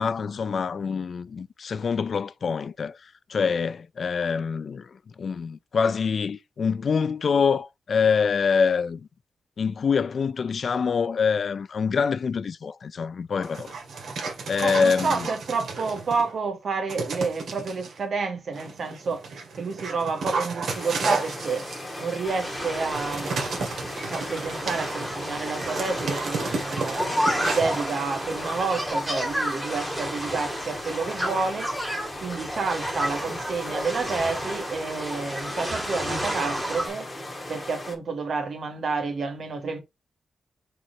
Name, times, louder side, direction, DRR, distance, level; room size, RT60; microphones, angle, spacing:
voice 1, 0.0-9.1 9.6-13.7 14.5-15.3, left 5 dB, 45° left, 0.3 m, -25 dB
Dog, 13.4-16.3 16.9-17.9 18.5-28.9, right 4 dB, 75° right, 2.2 m, -33 dB
voice 2, 14.6-19.2 19.6-21.7 22.0-23.4 24.1-27.1 27.4-31.7 32.2-37.1 37.5-39.8, right 4 dB, 55° right, 1.7 m, -29 dB
sound 1, 20.7-37.9, left 1 dB, 15° left, 2.4 m, -38 dB
sound 2, 22.2-36.9, equal, 10° right, 2.6 m, -31 dB
5.0 x 4.3 x 4.5 m
wide cardioid pair, 170°, 0 cm